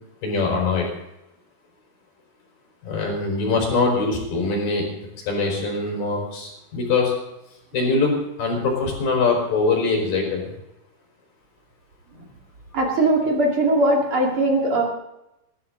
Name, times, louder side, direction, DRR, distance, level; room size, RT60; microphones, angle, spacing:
voice 1, 0.2-0.9 2.8-4.9 5.3-7.1 7.7-10.5, left 3 dB, 45° left, 0 dB, 6.3 m, -22 dB
voice 2, 12.7-14.8, right 2 dB, 40° right, -1 dB, 2.2 m, -20 dB
19.5 x 13.5 x 4.0 m, 0.89 s
omnidirectional pair, 5.9 m